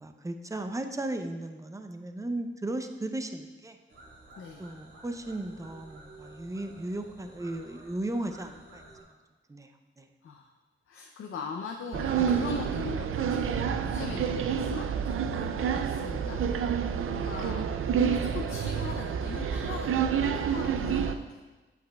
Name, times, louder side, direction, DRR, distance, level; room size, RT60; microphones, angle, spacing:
voice 1, 0.0-3.8 4.6-9.0 9.5-9.7 10.0-10.1, right 1 dB, 15° right, 6 dB, 0.5 m, -36 dB
sound 1, 3.9-9.0, right 2 dB, 65° right, 1.8 m, -52 dB
voice 2, 4.4-4.7 10.2-10.5 10.9-17.6 18.0-21.5, left 5 dB, 80° left, 2 dB, 0.5 m, -40 dB
sound 2, 11.9-21.1, right 7 dB, 90° right, 0.4 m, -29 dB
8.2 x 8.2 x 2.3 m, 1.2 s
wide cardioid pair, 95°, 21 cm